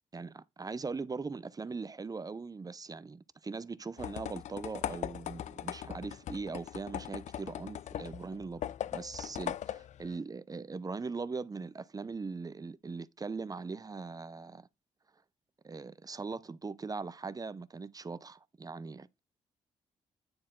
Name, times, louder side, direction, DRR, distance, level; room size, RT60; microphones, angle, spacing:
voice 1, 0.1-14.7 15.6-19.2, right 4 dB, 30° right, 0.7 m, -40 dB
sound 1, 4.0-10.2, left 11 dB, 65° left, 0.4 m, -40 dB
9.7 x 4.3 x 3.8 m
cardioid pair, 65°, 13 cm